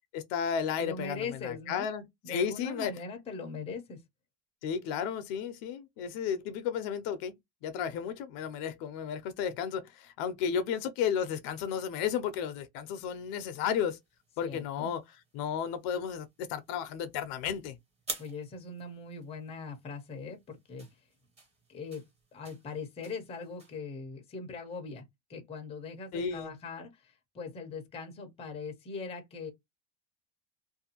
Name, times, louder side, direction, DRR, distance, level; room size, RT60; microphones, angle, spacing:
voice 1, 0.1-2.9 4.6-7.4 7.6-14.0 14.4-15.0 15.3-17.8 26.1-26.5, left 8 dB, 60° left, 0.6 m, -33 dB
voice 2, 0.8-1.9 2.2-4.0 14.4-14.9 18.2-20.9 21.7-22.0 22.3-25.0 25.3-29.5, left 4 dB, 15° left, 0.5 m, -41 dB
sound 1, 13.0-23.8, right 3 dB, 15° right, 0.8 m, -50 dB
2.6 x 2.2 x 2.8 m
cardioid pair, 155°, 41 cm